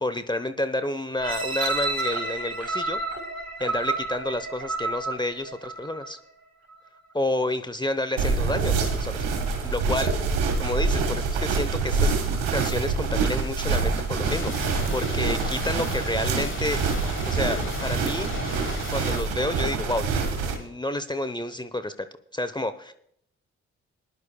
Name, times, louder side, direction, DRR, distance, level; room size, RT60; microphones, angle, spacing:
voice 1, 0.0-3.0 3.6-6.2 7.1-9.2 9.6-10.1 10.6-12.1 12.5-16.8 17.3-18.3 18.9-20.2 20.5-21.9 22.3-22.9, left 1 dB, 15° left, 10 dB, 0.9 m, -29 dB
sound 1, 1.2-6.1 6.7-6.8, right 3 dB, 50° right, 3.8 m, -30 dB
sound 2, 8.2-20.5, right 4 dB, 85° right, 1.8 m, -26 dB
Thunder / Rain, 14.2-19.2, left 4 dB, 35° left, 1.5 m, -36 dB
21.0 x 11.0 x 2.3 m, 0.70 s
hypercardioid pair, 40°, 33 cm